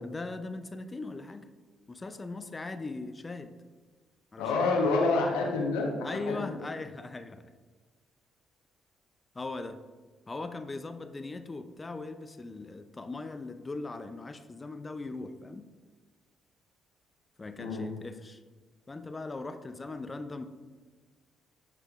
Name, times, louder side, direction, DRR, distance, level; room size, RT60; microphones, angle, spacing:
voice 1, 0.0-1.4 1.9-3.5 4.3-4.7 6.0-7.5 9.3-9.8 10.3-15.7 17.4-18.4 18.9-20.4, left 3 dB, 30° left, 10 dB, 0.5 m, -39 dB
voice 2, 4.4-6.5 17.6-17.8, left 3 dB, 85° left, -1 dB, 1.0 m, -28 dB
9.9 x 5.0 x 2.5 m, 1.4 s
hypercardioid pair, 55°, 0 cm